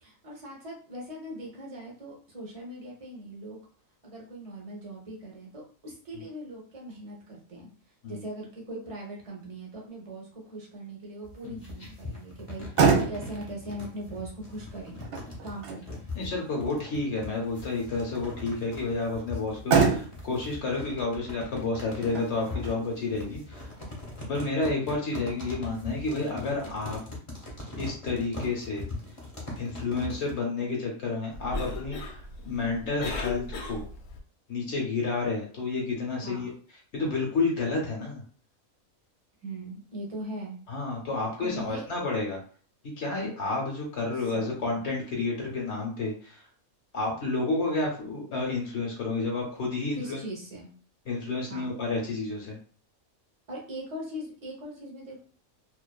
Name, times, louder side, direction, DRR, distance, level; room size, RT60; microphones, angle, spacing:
voice 1, 0.0-3.6 4.0-7.7 8.1-15.0 15.4-16.0 24.6-24.7 36.2-36.5 39.4-40.6 41.4-41.9 44.3-44.9 50.0-50.7 51.4-51.7 53.5-55.2, right 1 dB, 35° right, -2 dB, 0.6 m, -40 dB
sound 1, 11.2-30.3, left 2 dB, 30° left, 0.6 m, -40 dB
Motor vehicle (road), 12.4-25.3, right 5 dB, 60° right, 0.9 m, -31 dB
voice 2, 16.1-23.7 24.3-27.0 27.7-28.8 29.5-33.8 34.5-36.5 36.9-38.2 40.7-42.4 42.8-46.5 46.9-50.2 51.1-52.6, left 3 dB, 60° left, -1 dB, 0.8 m, -30 dB
Cough, 31.3-34.2, left 3 dB, 85° left, 1.0 m, -36 dB
2.5 x 2.3 x 2.2 m, 0.42 s
omnidirectional pair, 1.5 m